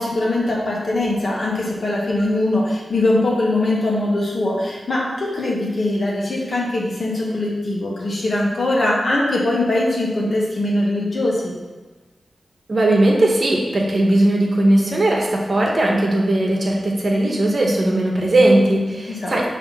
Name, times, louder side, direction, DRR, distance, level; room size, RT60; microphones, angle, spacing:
voice 1, 0.0-11.5 19.1-19.5, left 2 dB, 55° left, -4 dB, 1.5 m, -21 dB
voice 2, 12.7-19.5, right 1 dB, 50° right, -1 dB, 1.1 m, -18 dB
5.7 x 3.3 x 5.6 m, 1.3 s
wide cardioid pair, 110°, 0 cm